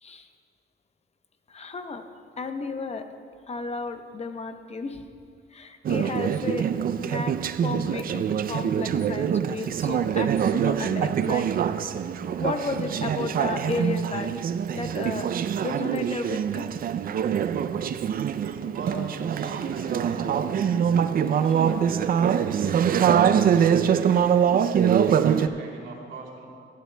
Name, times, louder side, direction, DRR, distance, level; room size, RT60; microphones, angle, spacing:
voice 1, 1.5-2.0 2.4-3.1 3.5-5.0 5.5-6.7 7.0-7.3 7.6-11.6 12.4-14.5 14.7-15.3 15.6-16.7 21.4-21.5, left 4 dB, 35° left, 7 dB, 0.8 m, -33 dB
Conversation / Chatter, 5.8-25.5, right 8 dB, 45° right, 0.4 m, -24 dB
voice 2, 18.4-20.7 21.5-22.8 23.2-26.5, right 2 dB, 75° right, -2 dB, 2.7 m, -41 dB
17.5 x 11.0 x 2.2 m, 2.2 s
cardioid pair, 90°, 20 cm